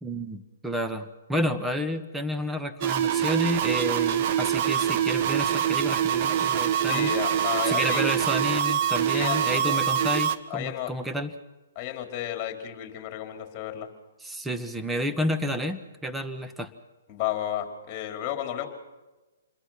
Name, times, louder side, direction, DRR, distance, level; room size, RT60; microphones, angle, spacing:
voice 1, 0.0-7.1 7.6-11.3 14.2-16.7, equal, 5° right, 7 dB, 1.5 m, -30 dB
sound 1, 2.8-10.4, right 9 dB, 40° right, 1.4 m, -25 dB
voice 2, 6.9-8.2 9.1-9.8 10.5-10.9 11.7-13.9 17.1-18.7, left 12 dB, 30° left, 5 dB, 4.6 m, -32 dB
28.0 x 22.0 x 6.1 m, 1.1 s
hypercardioid pair, 135°, 0 cm